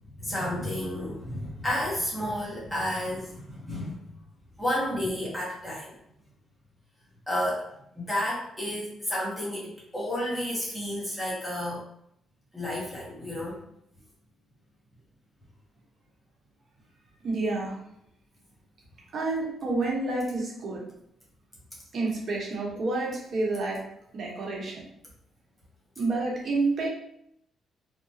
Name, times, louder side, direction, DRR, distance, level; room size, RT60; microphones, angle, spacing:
voice 1, 0.2-4.0 4.6-6.0 7.3-7.7 7.9-11.8 12.5-13.6, left 1 dB, ahead, -8 dB, 1.0 m, -31 dB
voice 2, 17.2-17.8 19.1-20.8 21.9-23.8 24.1-24.8 26.0-26.9, right 3 dB, 50° right, -3 dB, 1.0 m, -29 dB
2.9 x 2.2 x 2.7 m, 0.75 s
cardioid pair, 90°, 0 cm